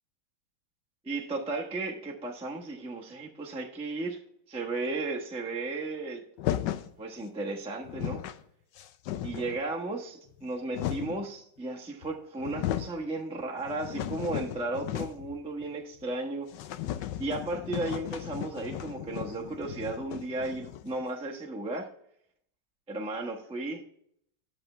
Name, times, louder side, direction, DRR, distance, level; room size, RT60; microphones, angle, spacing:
voice 1, 1.0-4.2 4.5-6.2 7.0-8.2 9.2-16.5 17.2-21.9 22.9-23.8, right 2 dB, 5° right, -2 dB, 0.7 m, -34 dB
sound 1, 6.4-6.9 7.6-7.7 7.8-8.4 8.8-9.6 10.3-11.3 12.0-12.1 12.4-13.0 13.4-15.4 15.6-15.7 16.0-16.1 16.5-21.0, left 12 dB, 70° left, 1.1 m, -35 dB
10.5 x 6.7 x 3.3 m, 0.68 s
omnidirectional pair, 2.2 m